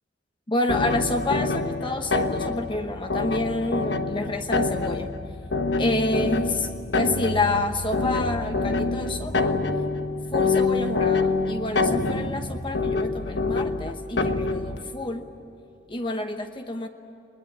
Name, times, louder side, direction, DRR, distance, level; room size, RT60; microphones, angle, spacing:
voice 1, 0.5-5.1 5.8-6.7 6.9-9.6 10.3-15.3 15.9-16.9, left 2 dB, 25° left, 5 dB, 1.0 m, -28 dB
sound 1, 0.7-14.8, left 3 dB, 70° left, 1.3 m, -26 dB
21.5 x 20.5 x 9.4 m, 2.9 s
head